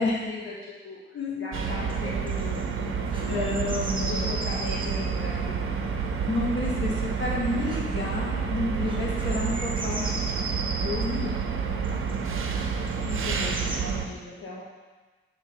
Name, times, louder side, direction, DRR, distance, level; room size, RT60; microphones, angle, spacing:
voice 1, 0.0-3.7 4.0-5.7 13.0-14.6, left 2 dB, 80° left, -6 dB, 1.5 m, -39 dB
voice 2, 1.1-1.5 2.0-2.2 3.3-4.4 6.3-10.2 10.5-11.4 11.9-12.2 12.9-13.1 13.4-13.9, left 2 dB, 60° left, -5 dB, 1.8 m, -31 dB
sound 1, 1.5-14.0, right 6 dB, 85° right, 0.8 m, -29 dB
sound 2, 1.9-13.8, right 2 dB, 25° right, 1.0 m, -39 dB
8.5 x 4.0 x 5.4 m, 1.3 s
wide cardioid pair, 140°, 21 cm